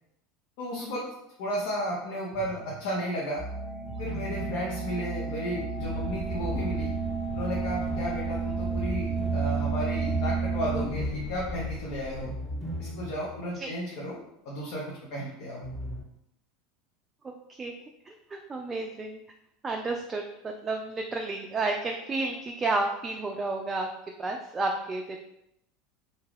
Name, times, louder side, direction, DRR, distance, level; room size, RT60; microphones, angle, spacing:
voice 1, 0.6-1.1 1.4-3.4 4.0-6.9 7.3-12.3 12.8-14.2 14.4-15.6, equal, 65° left, -5 dB, 0.7 m, -33 dB
sound 1, 2.3-3.1 3.8-6.6 7.2-13.5 13.7-13.8 15.6-16.0, equal, 15° left, 1.1 m, -40 dB
sound 2, 3.4-10.8, right 5 dB, 5° right, 1.1 m, -31 dB
sound 3, 5.7-12.3, left 1 dB, 45° left, 0.9 m, -40 dB
voice 2, 17.2-17.7 18.1-19.2 19.6-23.9 24.2-25.2, right 3 dB, 25° right, 2 dB, 0.3 m, -31 dB
2.6 x 2.2 x 3.3 m, 0.80 s
hypercardioid pair, 85°, 0 cm